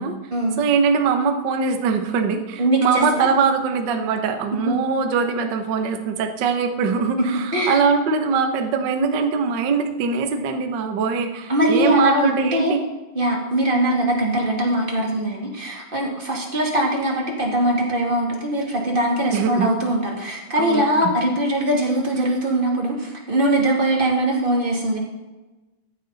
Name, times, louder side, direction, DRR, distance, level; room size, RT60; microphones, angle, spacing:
voice 1, 0.6-12.8 19.3-19.7 20.6-21.1, right 5 dB, 85° right, 5 dB, 0.9 m, -22 dB
voice 2, 2.6-3.3 4.6-4.7 7.5-7.8 11.5-12.8 13.1-25.0, right 1 dB, 20° right, -2 dB, 2.2 m, -21 dB
14.5 x 10.0 x 4.0 m, 1.1 s
omnidirectional pair, 3.8 m